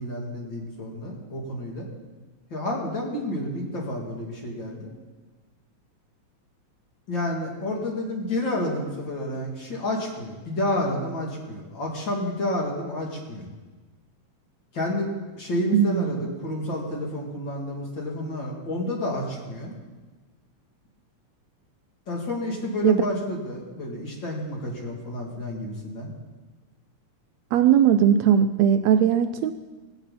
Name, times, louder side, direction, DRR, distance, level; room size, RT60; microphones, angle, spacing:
voice 1, 0.0-1.9 2.5-4.9 7.1-13.5 14.7-19.8 22.1-26.1, left 1 dB, 40° left, -2 dB, 3.3 m, -30 dB
voice 2, 15.7-16.2 22.8-23.0 27.5-29.5, right 9 dB, 75° right, 9 dB, 1.7 m, -19 dB
18.0 x 16.0 x 4.2 m, 1.3 s
omnidirectional pair, 3.3 m